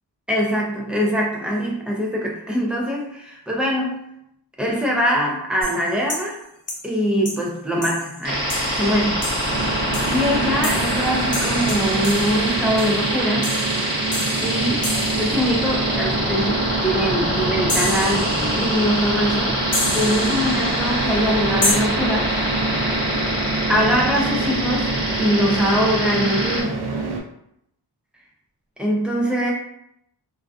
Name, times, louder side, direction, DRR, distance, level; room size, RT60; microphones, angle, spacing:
voice 1, 0.3-4.0 4.6-6.4 6.8-9.2 10.0-13.5 14.4-19.6 19.9-22.8 23.7-26.8 28.8-29.5, equal, 5° right, -3 dB, 0.3 m, -23 dB
sound 1, 5.6-6.4 6.7-6.9 7.3-7.4 7.8-15.6 17.7-18.7 19.7-20.8 21.6-21.7, left 2 dB, 40° left, 0.6 m, -30 dB
sound 2, 8.2-26.6, equal, 25° right, 0.8 m, -24 dB
sound 3, 9.5-27.2, right 3 dB, 75° right, 0.5 m, -27 dB
2.4 x 2.3 x 2.3 m, 0.76 s
wide cardioid pair, 170°, 40 cm